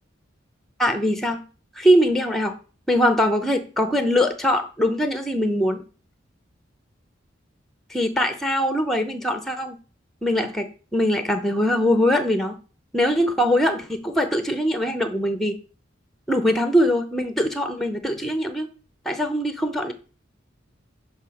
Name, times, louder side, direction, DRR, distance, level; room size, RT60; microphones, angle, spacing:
voice 1, 0.8-1.4 1.8-2.6 2.9-5.8 7.9-9.8 10.2-12.5 12.9-15.6 16.3-18.7 19.1-19.9, equal, ahead, 8 dB, 0.6 m, -22 dB
6.6 x 3.5 x 5.8 m, 0.37 s
head